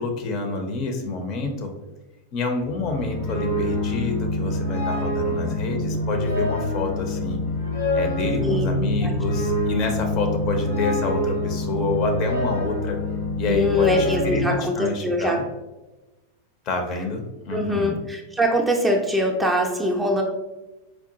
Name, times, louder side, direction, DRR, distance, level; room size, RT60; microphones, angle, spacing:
voice 1, 0.0-1.7 2.3-7.4 7.9-13.0 13.4-15.4 16.7-18.0, left 3 dB, 40° left, 4 dB, 0.6 m, -28 dB
sound 1, 2.7-14.4, left 1 dB, 65° left, 0.8 m, -25 dB
voice 2, 13.5-15.4 17.5-20.2, equal, 10° right, 1 dB, 0.4 m, -23 dB
4.5 x 2.4 x 2.6 m, 1.1 s
figure-of-eight pair, 90°, 0 cm